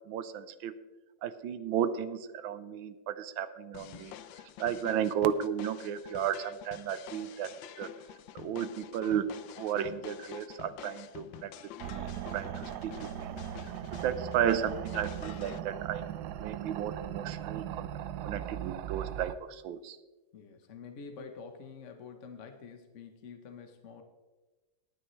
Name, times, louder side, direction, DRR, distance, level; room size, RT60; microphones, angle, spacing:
voice 1, 0.1-0.7 1.2-4.1 4.6-7.5 7.8-7.9 8.3-9.3 9.6-11.5 11.8-12.9 13.2-13.3 13.9-16.1 16.4-17.9 18.2-20.0, right 9 dB, 90° right, 13 dB, 1.5 m, -33 dB
sound 1, 3.7-15.6, left 11 dB, 80° left, 1.4 m, -48 dB
sound 2, 11.8-19.3, right 11 dB, 75° right, 1.0 m, -39 dB
voice 2, 20.3-24.0, left 5 dB, 45° left, 5 dB, 1.1 m, -47 dB
19.0 x 9.2 x 3.2 m, 1.2 s
omnidirectional pair, 2.1 m